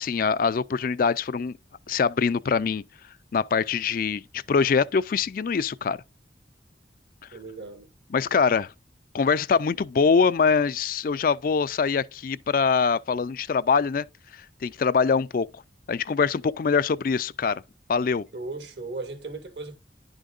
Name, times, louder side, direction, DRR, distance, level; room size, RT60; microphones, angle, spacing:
voice 1, 0.0-1.6 1.9-2.8 3.3-6.0 8.1-8.7 9.1-14.1 14.6-15.5 15.9-17.6 17.9-18.2, left 5 dB, 50° left, 0.4 m, -23 dB
voice 2, 7.3-7.9 18.3-19.7, right 3 dB, 70° right, 1.9 m, -36 dB
10.5 x 6.4 x 2.4 m
head